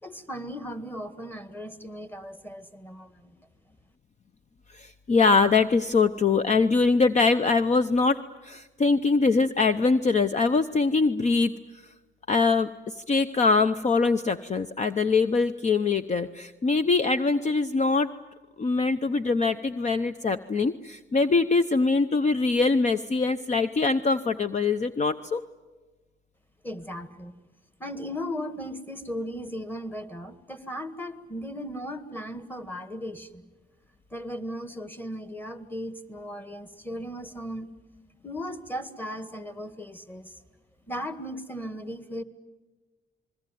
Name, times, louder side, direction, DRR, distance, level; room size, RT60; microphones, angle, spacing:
voice 1, 0.0-3.4 26.6-27.3 27.8-33.4 34.1-37.7 38.2-40.4 40.9-42.2, equal, 10° left, 11 dB, 1.9 m, -37 dB
voice 2, 4.7-11.5 12.3-18.1 18.6-25.4, left 4 dB, 35° left, 11 dB, 0.8 m, -23 dB
28.0 x 21.5 x 9.3 m, 1.2 s
cardioid pair, 90°, 20 cm